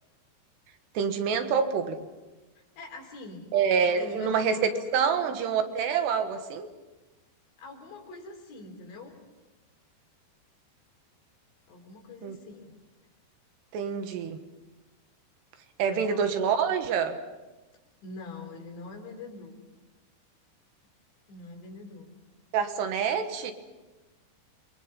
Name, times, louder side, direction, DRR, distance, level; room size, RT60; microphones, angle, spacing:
voice 1, 1.0-2.0 3.5-6.7 12.2-12.4 13.7-14.4 15.8-17.2 22.5-23.5, right 6 dB, 75° right, 7 dB, 3.5 m, -26 dB
voice 2, 2.6-3.5 3.8-5.2 7.6-9.1 11.7-12.7 15.9-16.2 18.0-19.6 21.3-22.1, left 3 dB, 85° left, 2 dB, 6.2 m, -43 dB
28.5 x 23.0 x 5.6 m, 1.2 s
omnidirectional pair, 5.0 m